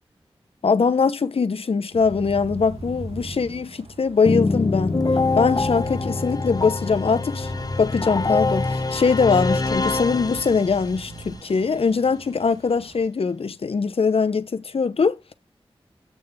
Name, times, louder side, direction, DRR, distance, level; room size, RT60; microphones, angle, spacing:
voice 1, 0.6-5.0 5.4-7.5 7.8-15.3, left 5 dB, 70° left, 0.8 m, -22 dB
sound 1, 1.9-13.1, right 3 dB, 75° right, 1.3 m, -43 dB
sound 2, 2.0-3.4 4.7-6.0 7.4-8.7 10.0-11.3, right 1 dB, 35° right, 1.4 m, -39 dB
sound 3, 4.2-11.0, left 3 dB, 40° left, 0.8 m, -24 dB
8.4 x 3.4 x 6.7 m
cardioid pair, 45°, 10 cm